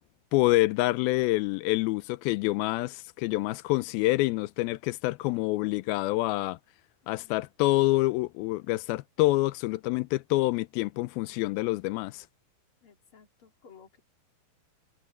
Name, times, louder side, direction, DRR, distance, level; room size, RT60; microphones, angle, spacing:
voice 1, 0.3-6.6 7.1-12.3, left 19 dB, 90° left, 2.5 m, -27 dB
voice 2, 7.0-7.5 12.8-14.0, left 6 dB, 40° left, 3.2 m, -56 dB
omnidirectional pair, 4.2 m